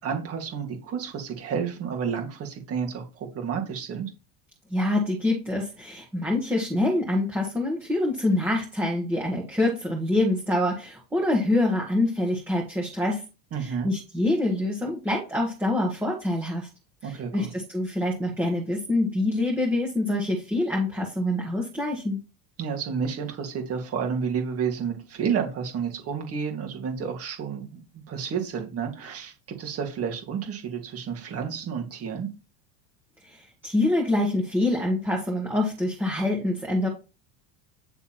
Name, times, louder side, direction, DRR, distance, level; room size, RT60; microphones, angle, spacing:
voice 1, 0.0-4.1 13.5-13.9 17.0-17.5 22.6-32.3, right 6 dB, 35° right, 2.1 m, -30 dB
voice 2, 4.7-13.2 13.6-16.7 17.0-22.2 33.2-36.9, left 1 dB, 5° right, 1.5 m, -25 dB
9.7 x 3.5 x 4.3 m
cardioid pair, 145°, 41 cm